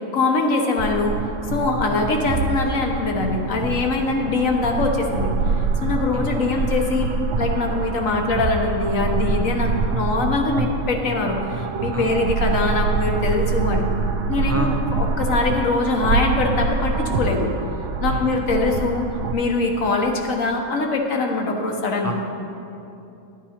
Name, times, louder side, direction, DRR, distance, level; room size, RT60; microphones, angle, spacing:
voice 1, 0.1-1.2 1.5-5.3 5.8-7.1 7.4-13.8 14.3-17.5 18.0-19.0 19.3-22.1, left 3 dB, 70° left, 2 dB, 1.4 m, -22 dB
sound 1, 0.8-19.4, right 4 dB, 65° right, 0.9 m, -25 dB
voice 2, 6.1-6.5 11.9-12.2 14.5-14.8 18.0-18.4 22.0-22.1, right 3 dB, 20° right, 1 dB, 0.4 m, -30 dB
12.0 x 9.2 x 4.3 m, 2.8 s
omnidirectional pair, 1.5 m